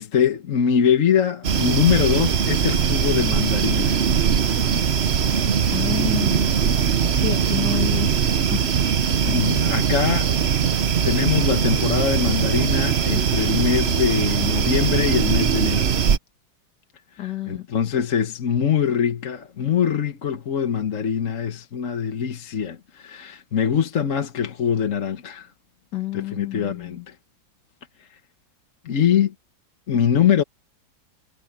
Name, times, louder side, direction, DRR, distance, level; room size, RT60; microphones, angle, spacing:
voice 1, 0.0-4.0 9.3-10.3 11.0-15.9 17.5-25.5 26.1-27.1 28.8-29.3 29.9-30.4, left 8 dB, 45° left, 1.4 m, -23 dB
sound 1, 1.4-16.2, right 7 dB, 45° right, 0.9 m, -21 dB
voice 2, 5.7-6.5 7.1-8.7 17.2-17.7 25.9-27.1, left 13 dB, 65° left, 2.1 m, -29 dB
omnidirectional pair, 2.1 m